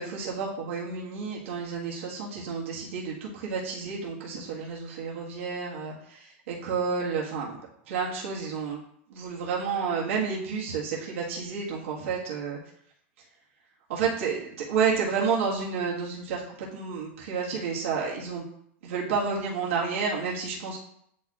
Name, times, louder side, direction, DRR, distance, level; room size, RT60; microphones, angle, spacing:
voice 1, 0.0-7.6 7.9-8.8 9.1-12.6 13.9-18.4 18.8-20.8, right 5 dB, 85° right, -4 dB, 1.6 m, -30 dB
9.1 x 4.4 x 2.4 m, 0.70 s
supercardioid pair, 175°, 7 cm